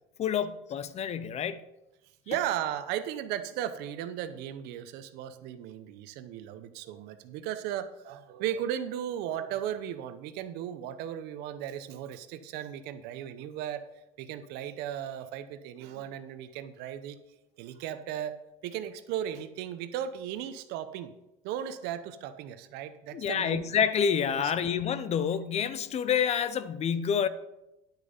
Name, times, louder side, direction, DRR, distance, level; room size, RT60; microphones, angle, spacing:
voice 1, 0.2-1.6 2.3-2.4 23.1-27.3, left 7 dB, 40° left, 0.6 m, -28 dB
voice 2, 2.3-13.8 14.2-17.2 17.6-18.4 18.6-21.1 21.4-23.7 24.4-24.5, right 10 dB, 75° right, 0.8 m, -36 dB
10.0 x 6.5 x 5.4 m
supercardioid pair, 110°, 17 cm